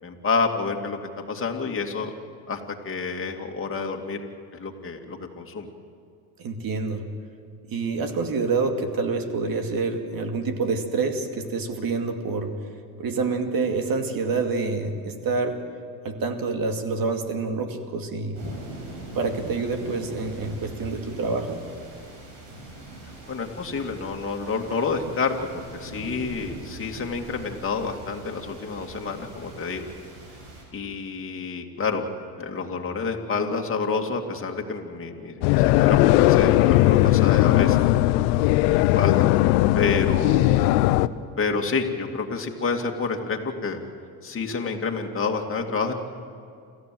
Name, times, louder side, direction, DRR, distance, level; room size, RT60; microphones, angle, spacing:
voice 1, 0.0-1.0 1.3-2.1 2.5-4.2 4.5-5.7 23.3-25.3 25.7-29.9 30.7-32.1 32.4-37.8 38.6-39.3 39.7-40.8 41.4-43.8 44.2-45.9, left 4 dB, 25° left, 2 dB, 2.5 m, -28 dB
voice 2, 6.4-7.0 7.7-12.5 13.0-15.6 16.0-18.4 19.1-21.6, right 4 dB, 45° right, 6 dB, 2.5 m, -27 dB
sound 1, 18.3-30.6, right 2 dB, 70° right, 7.5 m, -41 dB
sound 2, 35.4-41.1, left 16 dB, 75° left, 0.8 m, -18 dB
28.0 x 14.5 x 7.8 m, 2.4 s
supercardioid pair, 85°, 47 cm